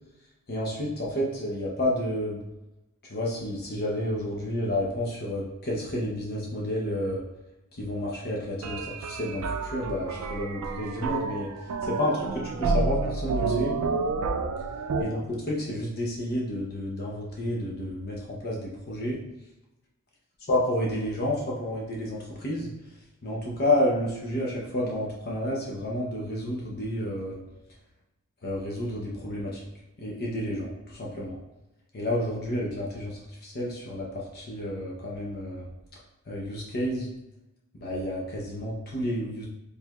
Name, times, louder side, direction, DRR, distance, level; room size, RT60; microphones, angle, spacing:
voice 1, 0.5-2.4 3.0-7.2 7.7-11.5 11.8-13.7 15.0-15.2 15.5-19.2 20.5-22.7 23.2-27.4 28.4-29.7 30.0-31.4 31.9-35.7 36.3-37.1 37.7-39.5, left 1 dB, 45° left, -3 dB, 0.7 m, -30 dB
sound 1, 8.6-15.0, right 4 dB, 80° right, 0.4 m, -29 dB
4.6 x 3.4 x 2.3 m, 1.0 s
head